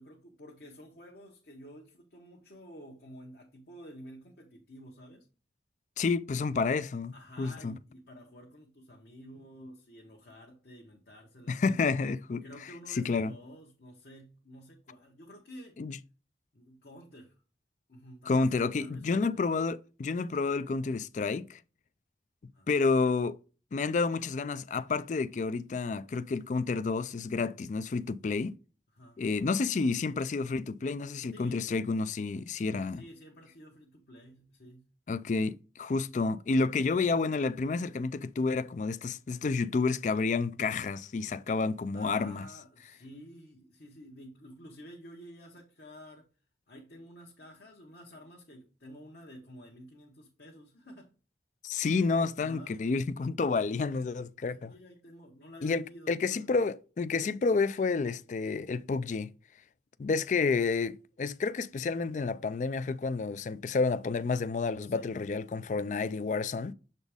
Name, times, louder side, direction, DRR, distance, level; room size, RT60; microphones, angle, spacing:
voice 1, 0.0-5.3 7.1-11.9 12.4-15.8 16.5-17.4 17.9-18.5 18.8-19.4 22.5-22.7 28.9-29.2 31.3-31.8 32.9-34.9 41.9-46.3 46.7-51.1 52.4-52.8 54.4-56.5 60.3-60.5 64.8-65.2, equal, 55° left, 1.1 m, -51 dB
voice 2, 6.0-7.8 11.5-12.4 12.9-13.3 15.8-16.0 18.3-21.6 22.7-23.4 23.7-28.5 29.2-33.0 35.1-42.4 51.6-54.7 55.6-59.3 60.0-66.7, left 4 dB, 40° left, 0.3 m, -30 dB
7.0 x 4.1 x 3.4 m
head